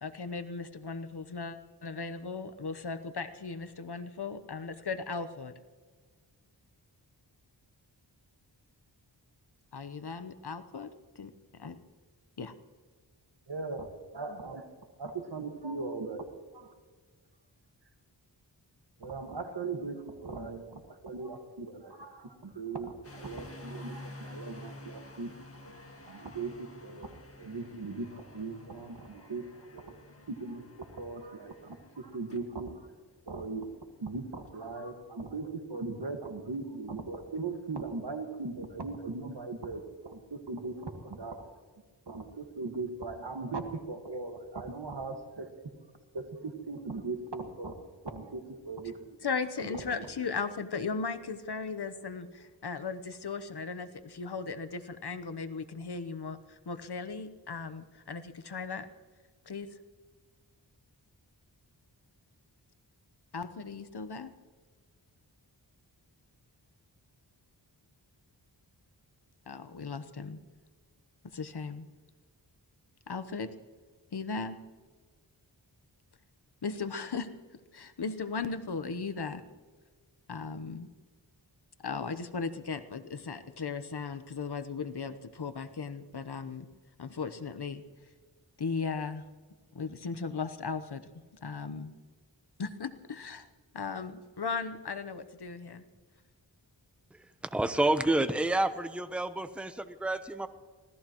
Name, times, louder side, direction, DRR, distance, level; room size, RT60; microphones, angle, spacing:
voice 1, 0.0-5.5 9.7-11.8 12.4-12.5 49.2-58.9 59.4-59.7 63.3-64.3 69.5-70.4 71.3-71.9 73.1-73.5 74.1-74.6 76.6-79.4 80.3-80.9 81.8-86.7 87.0-87.8 88.6-89.2 89.7-91.1 91.4-91.9 92.6-93.5 93.7-95.8, left 5 dB, 60° left, 10 dB, 1.0 m, -37 dB
voice 2, 13.5-13.9 14.1-16.3 16.5-16.7 19.0-25.3 25.6-25.8 26.1-27.1 27.4-30.6 30.9-32.8 33.3-33.7 34.0-41.6 42.1-45.5 46.1-47.8 48.0-49.2 49.6-49.9, right 3 dB, 65° right, 5 dB, 1.8 m, -39 dB
sound 1, 23.0-34.8, left 1 dB, 30° left, 2.0 m, -50 dB
voice 3, 97.5-100.5, right 2 dB, 5° right, 10 dB, 0.8 m, -29 dB
25.0 x 17.0 x 3.1 m, 1.4 s
wide cardioid pair, 65°, 44 cm